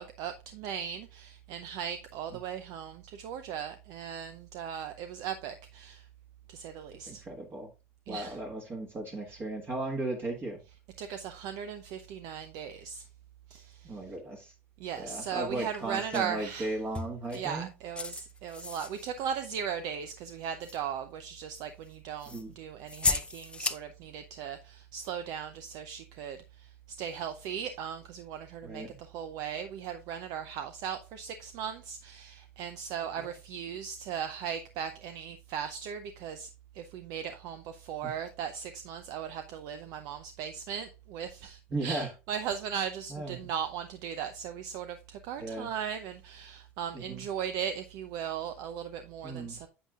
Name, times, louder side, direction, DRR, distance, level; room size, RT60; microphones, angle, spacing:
voice 1, 0.0-6.1 6.5-7.2 8.1-8.4 9.3-9.4 11.0-13.1 13.5-14.0 14.8-16.8 17.3-26.7 27.0-36.5 36.7-49.7, right 8 dB, 65° right, 0.6 m, -38 dB
voice 2, 7.0-7.7 8.1-10.6 13.8-14.5 15.0-17.7 22.3-22.5 28.6-29.0 33.2-33.3 41.7-42.1 43.1-43.4 45.4-45.7 46.9-47.2 49.2-49.6, right 2 dB, 35° right, 1.6 m, -36 dB
sound 1, 16.1-16.3 16.9-17.5 18.0-19.1 19.9-20.0 20.6-20.8 22.2-22.4 22.9-23.8, left 3 dB, 15° left, 0.7 m, -34 dB
7.9 x 7.6 x 2.4 m
supercardioid pair, 95°, 7 cm